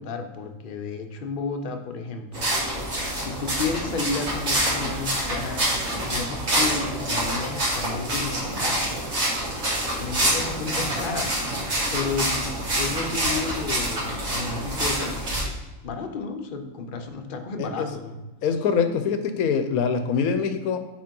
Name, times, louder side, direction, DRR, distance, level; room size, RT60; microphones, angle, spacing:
voice 1, 0.0-2.5 3.2-5.6 6.0-8.9 9.9-11.5 11.9-12.5 12.8-15.5 15.8-18.2, left 4 dB, 45° left, 5 dB, 0.8 m, -32 dB
sound 1, 2.3-15.4, right 1 dB, 70° right, 2.4 m, -26 dB
voice 2, 17.6-17.9 18.4-20.8, left 6 dB, 90° left, 8 dB, 1.2 m, -24 dB
5.2 x 4.5 x 5.3 m, 1.1 s
omnidirectional pair, 1.5 m